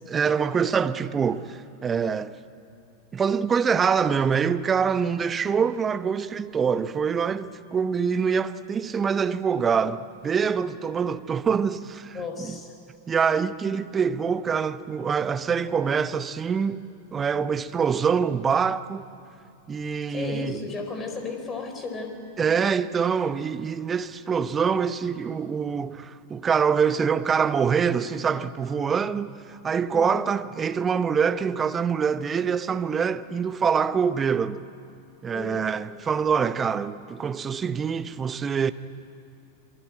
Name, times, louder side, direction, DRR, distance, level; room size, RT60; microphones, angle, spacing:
voice 1, 0.1-2.3 3.1-12.2 13.1-16.8 17.1-19.0 19.7-20.6 22.4-34.6 35.2-38.7, right 6 dB, 20° right, 0.9 m, -25 dB
voice 2, 12.1-12.7 20.1-22.2 29.9-30.3 35.3-35.7, left 3 dB, 20° left, 4.5 m, -34 dB
27.0 x 23.0 x 8.9 m
figure-of-eight pair, 90°, 0 cm